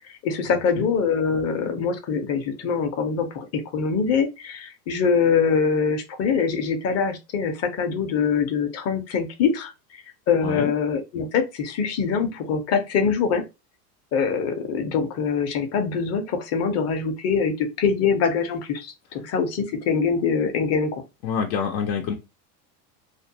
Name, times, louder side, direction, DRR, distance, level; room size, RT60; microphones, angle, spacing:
voice 1, 0.2-13.4 14.1-21.0, left 6 dB, 30° left, 0.6 m, -24 dB
voice 2, 10.4-10.7 21.2-22.1, left 6 dB, 80° left, 0.7 m, -26 dB
2.5 x 2.1 x 2.7 m
supercardioid pair, 115°, 49 cm